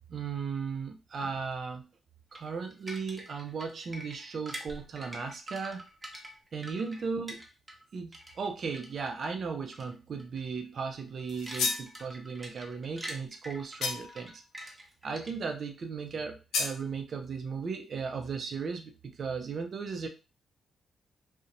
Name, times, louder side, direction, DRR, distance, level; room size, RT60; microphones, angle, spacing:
voice 1, 0.1-1.9 2.3-5.9 6.5-7.4 7.9-14.7 15.0-20.1, right 5 dB, 60° right, 5 dB, 0.4 m, -36 dB
sound 1, 2.3-7.9 8.1-9.3 9.7-9.9 10.2-10.4 10.8-15.6, right 1 dB, 25° right, 0.8 m, -45 dB
sound 2, 11.3-11.9 13.8-14.3 16.5-16.8, left 4 dB, 80° left, 0.5 m, -31 dB
2.5 x 2.0 x 2.8 m, 0.30 s
supercardioid pair, 55°, 0 cm